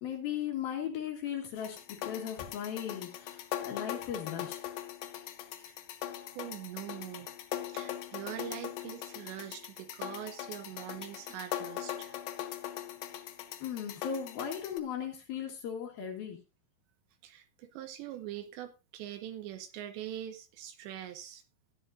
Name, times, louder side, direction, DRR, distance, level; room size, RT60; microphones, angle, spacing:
voice 1, 0.0-4.6 13.6-16.4, left 8 dB, 60° left, 2 dB, 3.0 m, -37 dB
sound 1, 1.6-14.8, left 12 dB, 85° left, 2.0 m, -41 dB
voice 2, 6.4-7.3 7.7-12.2 17.2-21.4, right 11 dB, 80° right, 9 dB, 2.9 m, -43 dB
14.5 x 10.0 x 2.6 m, 0.27 s
omnidirectional pair, 5.4 m